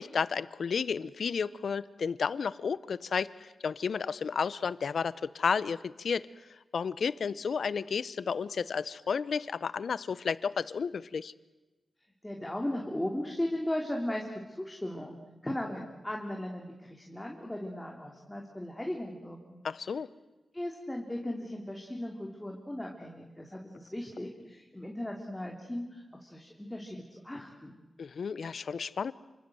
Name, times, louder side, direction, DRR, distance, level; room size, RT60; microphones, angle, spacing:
voice 1, 0.0-6.3 6.7-11.3 19.6-20.1 28.0-29.1, left 6 dB, 75° left, 17 dB, 0.9 m, -32 dB
voice 2, 12.2-19.6 20.5-27.8, left 1 dB, 10° left, 0 dB, 3.2 m, -37 dB
29.0 x 26.0 x 7.8 m, 1.2 s
wide cardioid pair, 105°, 0 cm